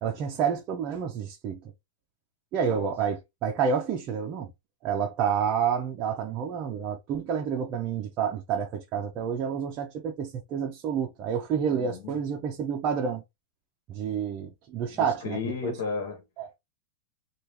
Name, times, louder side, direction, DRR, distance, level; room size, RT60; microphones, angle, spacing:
voice 1, 0.0-1.7 2.5-4.5 4.8-13.2 13.9-15.7 16.4-16.5, right 7 dB, 30° right, 0.4 m, -29 dB
voice 2, 11.7-12.1 14.9-16.2, left 5 dB, 80° left, 1.2 m, -34 dB
3.4 x 2.3 x 2.8 m
supercardioid pair, 175°, 0 cm